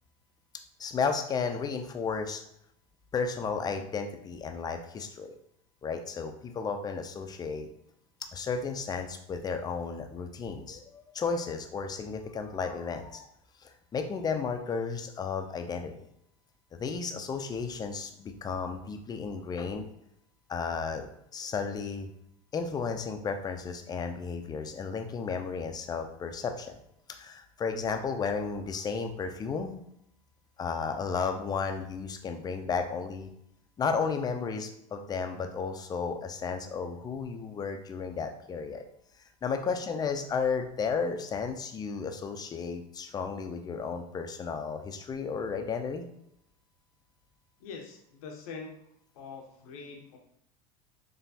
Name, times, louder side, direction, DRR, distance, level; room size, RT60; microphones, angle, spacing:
voice 1, 0.8-2.4 3.1-5.3 5.8-7.7 8.3-13.3 13.6-15.9 16.8-19.8 20.5-21.1 21.3-22.1 22.5-26.8 27.1-29.7 30.6-33.3 33.8-38.8 39.4-46.0, left 5 dB, 20° left, 5 dB, 0.5 m, -33 dB
voice 2, 47.6-48.8 49.1-50.2, left 5 dB, 85° left, 1 dB, 0.7 m, -44 dB
4.2 x 3.1 x 2.8 m, 0.77 s
supercardioid pair, 120°, 18 cm